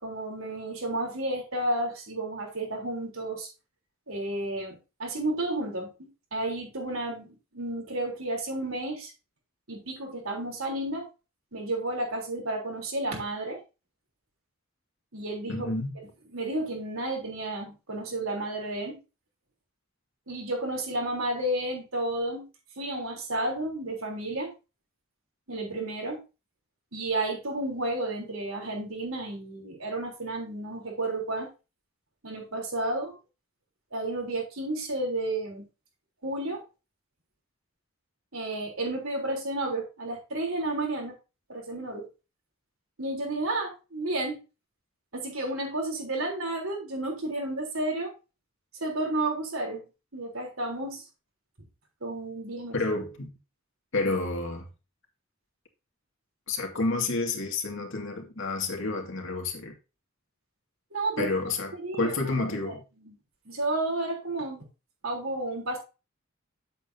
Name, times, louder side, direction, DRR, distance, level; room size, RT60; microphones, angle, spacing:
voice 1, 0.0-3.5 4.1-9.1 9.7-11.1 11.5-13.6 15.1-15.7 16.3-19.0 20.3-22.5 22.8-24.5 25.5-26.2 26.9-31.5 32.2-33.2 33.9-35.7 36.2-36.6 38.3-41.1 41.5-42.1 43.0-44.4 45.1-48.1 48.8-49.8 50.1-51.0 52.0-52.8 60.9-61.3 61.7-62.1 62.6-62.7 63.0-63.1 63.5-64.6 65.0-65.8, right 2 dB, 80° right, 3.7 m, -32 dB
voice 2, 15.5-15.9 52.7-53.3 53.9-54.7 56.5-59.8 61.2-62.8, left 3 dB, 65° left, 2.3 m, -30 dB
8.9 x 8.0 x 2.8 m
head